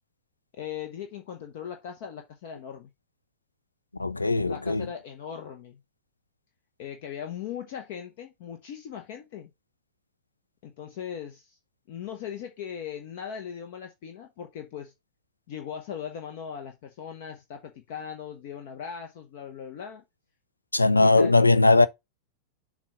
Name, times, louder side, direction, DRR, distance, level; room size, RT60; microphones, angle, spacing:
voice 1, 0.6-2.9 4.5-5.8 6.8-9.5 10.6-11.6 11.9-14.9 15.5-20.0 21.0-21.3, left 8 dB, 50° left, 0.9 m, -39 dB
voice 2, 4.0-4.9 20.7-21.9, left 3 dB, 80° left, 0.4 m, -19 dB
7.2 x 2.4 x 5.5 m
figure-of-eight pair, 90°, 0 cm